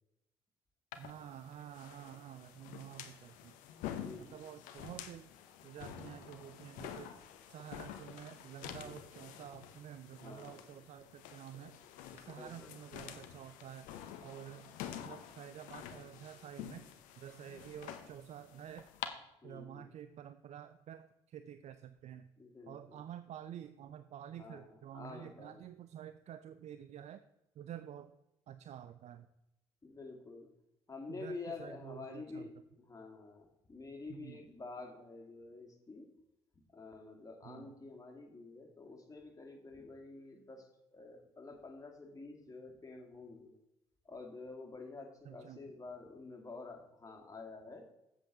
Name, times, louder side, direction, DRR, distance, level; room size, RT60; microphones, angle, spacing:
sound 1, 0.9-19.1, left 10 dB, 75° left, 0.8 m, -49 dB
voice 1, 1.0-3.5 4.2-5.3 5.6-7.1 7.5-11.8 12.1-13.9 14.2-16.8 17.2-18.9 19.4-22.3 22.7-27.2 27.6-28.1 28.5-29.3 31.1-32.5 34.1-34.4 37.4-37.7 45.3-45.6, right 10 dB, 55° right, 12 dB, 0.5 m, -50 dB
voice 2, 3.9-4.5 8.8-9.0 10.2-10.6 12.4-12.7 19.4-19.9 22.4-23.0 24.4-25.7 29.8-30.5 30.9-36.1 36.7-43.5 44.0-47.8, left 3 dB, 25° left, 2 dB, 2.3 m, -49 dB
7.8 x 7.6 x 3.9 m, 0.91 s
hypercardioid pair, 50°, 13 cm